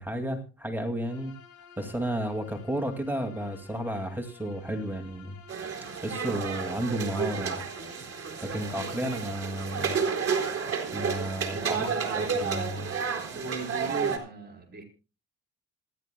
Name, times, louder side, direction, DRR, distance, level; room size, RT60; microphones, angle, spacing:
voice 1, 0.0-1.3 1.8-5.4 6.0-7.6 8.4-10.0 10.9-11.9 12.1-12.9, right 1 dB, 5° right, 4 dB, 2.3 m, -32 dB
Bowed string instrument, 1.0-13.8, left 7 dB, 85° left, 6.7 m, -53 dB
sound 1, 5.5-14.2, right 6 dB, 50° right, 3.9 m, -31 dB
voice 2, 8.7-9.2 11.5-12.4 13.0-14.8, right 2 dB, 35° right, 2 dB, 4.4 m, -40 dB
26.5 x 11.0 x 2.2 m, 0.33 s
cardioid pair, 90°, 30 cm